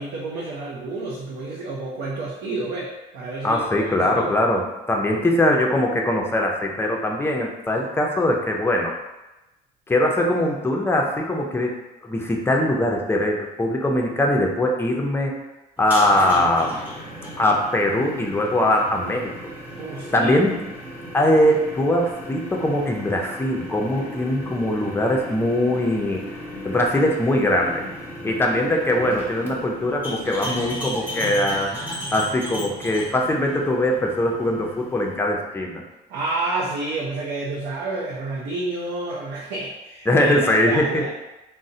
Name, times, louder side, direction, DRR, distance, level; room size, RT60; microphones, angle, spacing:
voice 1, 0.0-4.3 19.8-20.3 36.1-41.1, right 2 dB, 80° right, -5 dB, 0.6 m, -30 dB
voice 2, 3.4-8.9 9.9-11.8 12.0-15.4 15.8-16.8 17.4-19.5 20.1-20.5 21.1-26.2 26.6-27.8 28.2-35.8 40.1-41.0, left 1 dB, 15° left, 0 dB, 0.5 m, -21 dB
sound 1, 15.8-35.2, equal, 10° right, 0.8 m, -35 dB
3.7 x 2.0 x 2.6 m, 1.0 s
cardioid pair, 110°, 17 cm